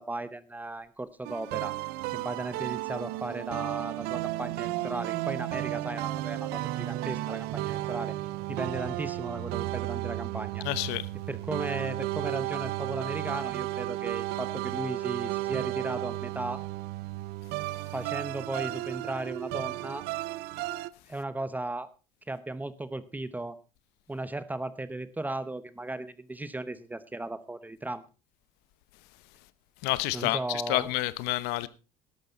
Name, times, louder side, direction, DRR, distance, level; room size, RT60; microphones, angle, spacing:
voice 1, 0.0-1.7 2.1-8.1 8.5-10.6 11.3-16.6 17.9-20.1 21.1-21.9 22.3-23.6 24.1-28.0 30.1-30.9, right 2 dB, 10° right, 0.9 m, -36 dB
sound 1, 1.2-20.9, right 17 dB, 70° right, 0.6 m, -33 dB
voice 2, 10.6-11.1 29.8-31.7, left 18 dB, 75° left, 0.9 m, -29 dB
13.0 x 11.5 x 4.0 m
cardioid pair, 115°, 17 cm